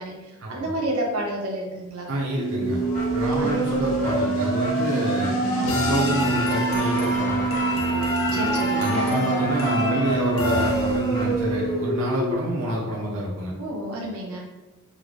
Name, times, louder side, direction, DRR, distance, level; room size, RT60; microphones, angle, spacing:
voice 1, 0.0-2.1 3.4-3.7 5.6-6.2 8.3-9.2 13.6-14.4, right 1 dB, 90° right, -1 dB, 0.8 m, -30 dB
voice 2, 2.1-2.8 3.1-7.4 8.3-8.4 8.8-13.5, equal, 60° right, -4 dB, 0.5 m, -28 dB
sound 1, 2.3-12.3, right 3 dB, 40° left, 1.1 m, -25 dB
sound 2, 2.5-11.4, left 3 dB, 65° left, 0.4 m, -31 dB
3.7 x 2.0 x 3.1 m, 1.1 s
head